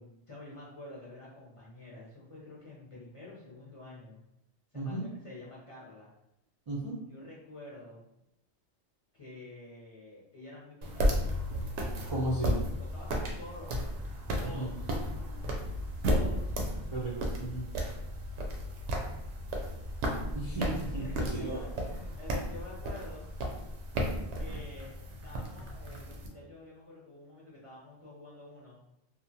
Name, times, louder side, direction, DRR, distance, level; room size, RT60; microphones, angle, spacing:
voice 1, 0.3-4.2 4.7-5.0 5.2-6.1 6.9-8.1 9.1-11.3 11.9-14.0 14.3-14.9 16.1-16.6 19.5-19.9 21.0-23.3 24.4-25.0 25.2-28.9, left 2 dB, 40° left, -6 dB, 0.5 m, -49 dB
voice 2, 4.7-5.1 6.7-6.9 12.1-12.6 14.5-14.7 16.9-17.7 20.3-21.6, right 2 dB, 45° right, -6 dB, 0.4 m, -34 dB
sound 1, 10.8-26.3, equal, 80° right, 0.9 m, -34 dB
3.0 x 2.0 x 2.6 m, 0.82 s
omnidirectional pair, 1.2 m